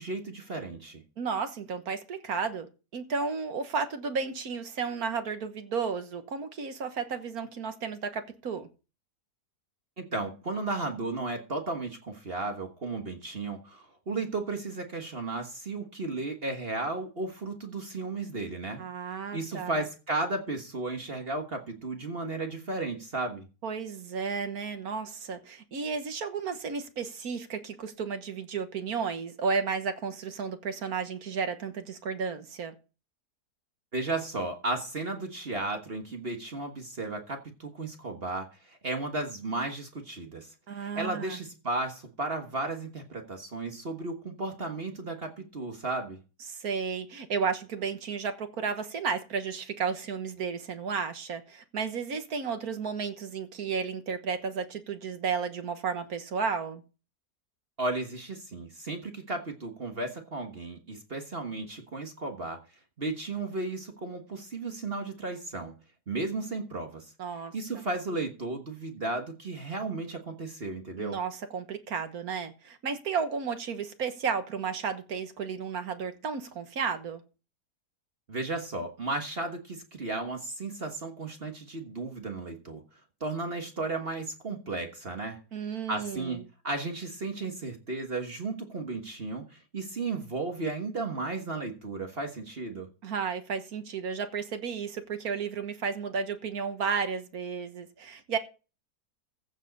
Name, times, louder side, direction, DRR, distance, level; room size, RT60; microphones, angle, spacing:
voice 1, 0.0-1.0 10.0-18.8 19.1-23.5 33.9-46.2 57.8-62.6 63.0-65.7 66.1-67.1 67.5-71.2 78.3-82.8 83.2-85.4 85.9-92.9, right 2 dB, 40° right, 1.6 m, -34 dB
voice 2, 1.2-8.7 18.8-19.8 23.6-32.7 40.7-41.4 46.5-56.8 67.2-67.5 71.0-77.2 85.5-86.4 93.0-98.4, right 5 dB, 65° right, 1.7 m, -33 dB
15.0 x 7.4 x 4.1 m
omnidirectional pair, 1.7 m